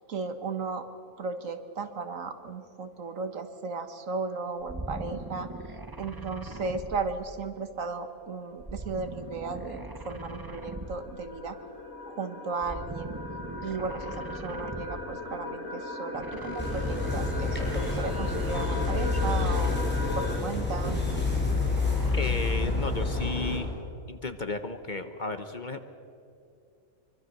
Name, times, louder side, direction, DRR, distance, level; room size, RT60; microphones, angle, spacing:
voice 1, 0.1-0.9 1.2-5.5 6.0-11.6 12.1-13.2 13.6-19.9 20.2-21.0, right 4 dB, 70° right, 8 dB, 1.8 m, -35 dB
sound 1, 4.6-7.7 8.6-11.3 12.6-15.2 16.1-20.1 20.6-23.1, right 2 dB, 15° right, 1.2 m, -41 dB
sound 2, 8.5-20.4, left 2 dB, 70° left, 3.3 m, -38 dB
sound 3, 16.6-23.6, left 3 dB, 5° left, 5.8 m, -28 dB
voice 2, 22.1-23.7 24.1-25.8, left 2 dB, 35° left, 9 dB, 1.1 m, -33 dB
24.5 x 24.5 x 6.7 m, 2.6 s
omnidirectional pair, 1.4 m